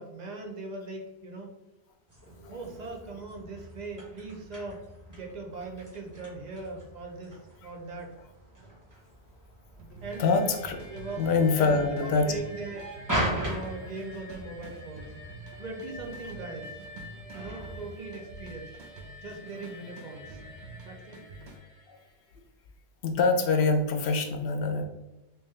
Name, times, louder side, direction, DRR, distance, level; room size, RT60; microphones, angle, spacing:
voice 1, 0.0-1.5 2.5-4.8 5.1-8.1 10.0-10.2 10.9-11.2 11.6-13.0 13.2-15.2 15.6-16.8 17.3-18.8 19.2-20.4 20.8-21.2, right 3 dB, 50° right, 2 dB, 0.7 m, -40 dB
sound 1, 2.1-18.0, right 1 dB, 20° right, 1.1 m, -40 dB
sound 2, 9.8-21.6, right 2 dB, 85° right, 0.9 m, -48 dB
sound 3, 10.1-22.5, left 1 dB, 30° left, 1.4 m, -48 dB
voice 2, 10.2-10.8 11.2-12.3 23.0-24.9, left 4 dB, 75° left, 5 dB, 0.8 m, -25 dB
3.5 x 2.9 x 3.1 m, 0.99 s
omnidirectional pair, 1.1 m